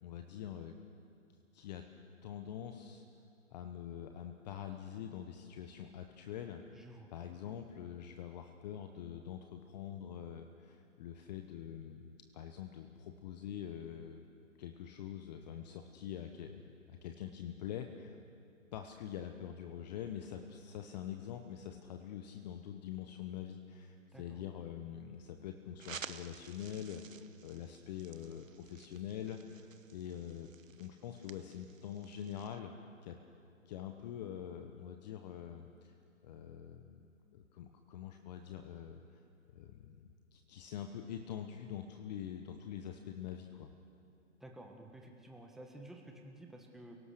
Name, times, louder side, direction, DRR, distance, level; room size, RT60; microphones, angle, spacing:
voice 1, 0.0-0.7 1.5-1.8 2.2-3.0 3.5-6.8 7.1-14.2 14.6-18.2 18.7-29.6 29.9-32.7 33.0-33.2 33.7-35.9 36.2-37.1 37.3-39.2 39.5-43.7, left 9 dB, 30° left, 6 dB, 1.1 m, -45 dB
voice 2, 6.7-7.1 24.1-24.4 44.4-47.0, right 1 dB, ahead, 2 dB, 1.3 m, -52 dB
sound 1, 25.8-32.6, right 7 dB, 75° right, 1.2 m, -53 dB
29.0 x 17.5 x 6.6 m, 2.6 s
figure-of-eight pair, 135°, 39 cm